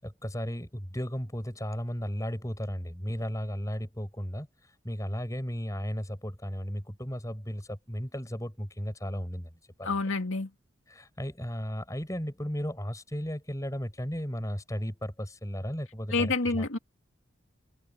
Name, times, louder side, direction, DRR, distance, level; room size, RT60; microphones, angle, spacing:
voice 1, 0.0-4.5 4.8-9.5 9.8-10.0 10.9-16.7, equal, 15° left, 5.6 m, -35 dB
voice 2, 9.8-10.5 16.1-16.8, left 3 dB, 85° left, 2.4 m, -28 dB
open air
head